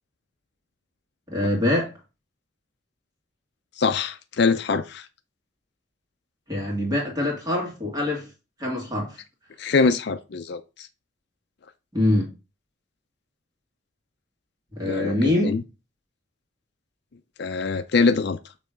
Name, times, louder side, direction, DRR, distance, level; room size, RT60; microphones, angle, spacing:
voice 1, 1.3-1.9 6.5-8.3 8.6-9.2 11.9-12.3 14.7-15.6, left 1 dB, 20° right, 2.2 m, -24 dB
voice 2, 3.8-5.1 9.6-10.9 14.8-15.6 17.4-18.4, left 4 dB, 55° left, 0.5 m, -23 dB
6.7 x 3.1 x 5.0 m
head